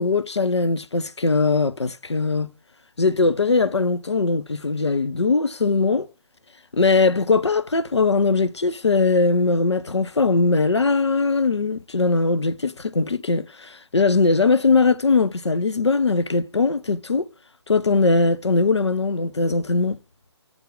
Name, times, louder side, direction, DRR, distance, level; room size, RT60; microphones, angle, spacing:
voice 1, 0.0-2.5 3.0-6.1 6.7-17.3 17.7-20.0, left 3 dB, 75° left, 0.7 m, -20 dB
8.2 x 3.6 x 3.7 m
figure-of-eight pair, 145°, 15 cm